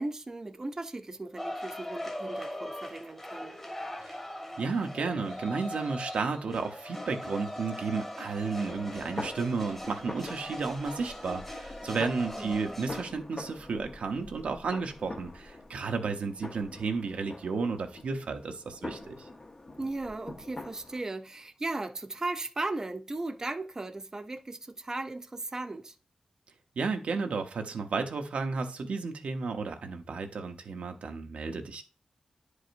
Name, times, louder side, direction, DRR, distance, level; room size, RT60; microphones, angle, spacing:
voice 1, 0.0-3.6 12.4-12.6 19.8-25.9, right 2 dB, 25° right, 0.5 m, -37 dB
sound 1, 1.4-13.1, left 1 dB, 15° left, 1.3 m, -40 dB
voice 2, 4.6-19.3 26.8-31.8, right 4 dB, 85° right, 0.9 m, -33 dB
sound 2, 8.3-21.0, left 2 dB, 35° left, 0.9 m, -45 dB
10.0 x 4.9 x 2.6 m
wide cardioid pair, 110°, 2 cm